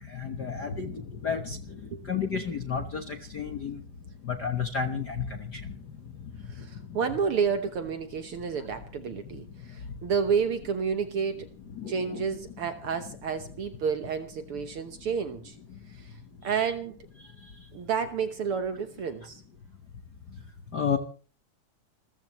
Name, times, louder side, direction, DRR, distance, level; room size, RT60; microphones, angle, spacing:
voice 1, 0.0-3.8 4.2-5.8 6.6-6.7 11.7-12.3 16.6-16.7 17.4-17.5 20.7-21.0, left 6 dB, 55° left, 6 dB, 1.1 m, -32 dB
voice 2, 6.5-11.5 11.9-15.6 15.9-16.2 16.4-17.0 17.7-19.4, right 6 dB, 60° right, 8 dB, 1.6 m, -30 dB
28.5 x 14.5 x 3.1 m, 0.39 s
omnidirectional pair, 3.4 m